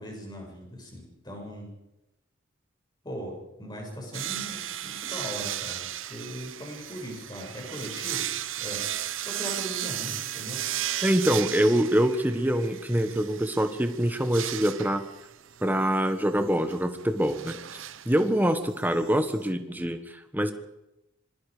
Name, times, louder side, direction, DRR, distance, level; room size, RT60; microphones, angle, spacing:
voice 1, 0.0-1.7 3.0-8.3 8.6-8.9 9.2-10.7, equal, 20° left, 0 dB, 6.7 m, -39 dB
sound 1, 4.1-19.5, right 12 dB, 70° right, 0.9 m, -35 dB
voice 2, 11.0-15.0 15.6-17.6 18.0-20.0 20.3-20.5, equal, 10° right, 8 dB, 1.5 m, -24 dB
26.0 x 21.5 x 5.1 m, 0.91 s
head